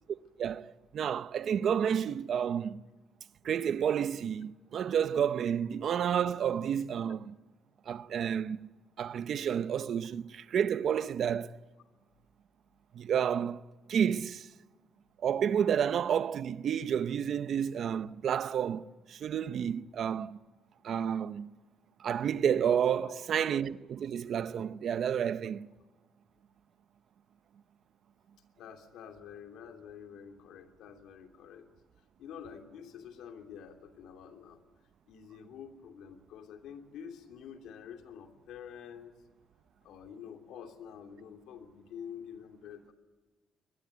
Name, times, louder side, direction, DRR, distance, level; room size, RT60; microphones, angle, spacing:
voice 1, 0.4-2.8 3.4-7.3 7.9-8.6 9.0-11.5 12.9-13.6 13.9-14.5 15.2-20.4 20.8-21.5 22.0-25.7, right 8 dB, 50° right, 0.7 m, -30 dB
voice 2, 28.6-31.7 32.2-34.6 35.1-39.2 39.8-42.9, left 8 dB, 85° left, 3.0 m, -48 dB
23.5 x 20.5 x 9.5 m
cardioid pair, 165°, 0 cm